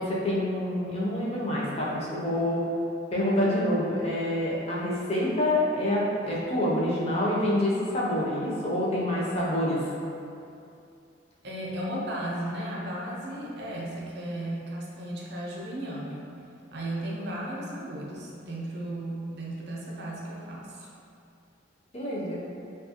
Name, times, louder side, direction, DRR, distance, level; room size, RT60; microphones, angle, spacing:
voice 1, 0.0-2.6 3.1-9.9 21.9-22.3, left 1 dB, 30° left, -5 dB, 0.4 m, -27 dB
voice 2, 11.4-16.2 16.7-20.9, right 1 dB, 55° right, -4 dB, 0.5 m, -35 dB
2.7 x 2.3 x 2.7 m, 2.6 s
head